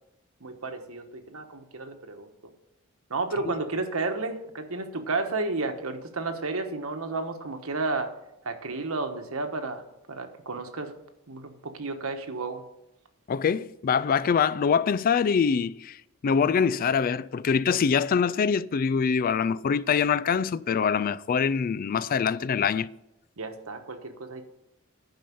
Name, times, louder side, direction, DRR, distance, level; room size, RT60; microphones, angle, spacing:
voice 1, 0.4-2.3 3.1-8.1 8.4-10.9 11.3-12.6 23.4-24.4, right 3 dB, 80° right, 1.2 m, -32 dB
voice 2, 13.3-16.0 16.2-22.9, left 6 dB, 40° left, 0.3 m, -24 dB
10.5 x 5.6 x 6.9 m
head